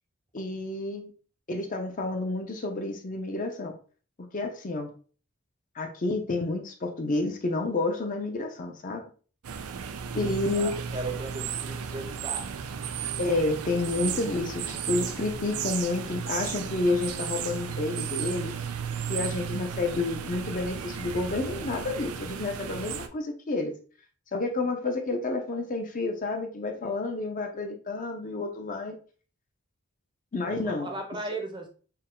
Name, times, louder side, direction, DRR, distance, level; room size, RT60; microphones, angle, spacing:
voice 1, 0.3-1.1 1.5-3.7 4.2-4.9 5.8-9.0 10.1-10.7 13.2-18.5 19.1-23.7 24.3-29.0 30.3-30.9, left 2 dB, 35° left, 4 dB, 0.5 m, -30 dB
sound 1, 9.4-23.1, right 7 dB, 75° right, 0.4 m, -34 dB
voice 2, 10.5-12.5 30.4-31.7, right 2 dB, 20° right, 3 dB, 0.6 m, -36 dB
4.5 x 2.1 x 3.6 m, 0.39 s
head